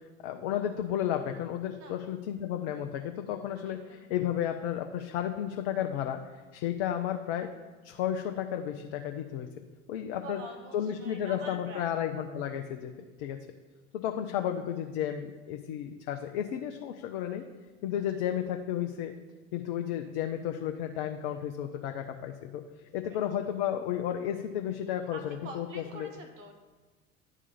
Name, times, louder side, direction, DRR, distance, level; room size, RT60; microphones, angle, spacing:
voice 1, 0.2-6.2 6.5-7.5 7.8-10.4 10.7-12.9 13.2-13.5 13.9-17.5 17.8-19.1 19.5-22.6 22.9-26.1, left 10 dB, 45° left, 5 dB, 0.6 m, -33 dB
voice 2, 3.7-4.0 10.2-11.9 18.0-18.2 23.1-23.3 25.1-26.5, right 1 dB, 65° right, 4 dB, 1.2 m, -46 dB
9.9 x 3.7 x 6.8 m, 1.3 s
figure-of-eight pair, 75°, 41 cm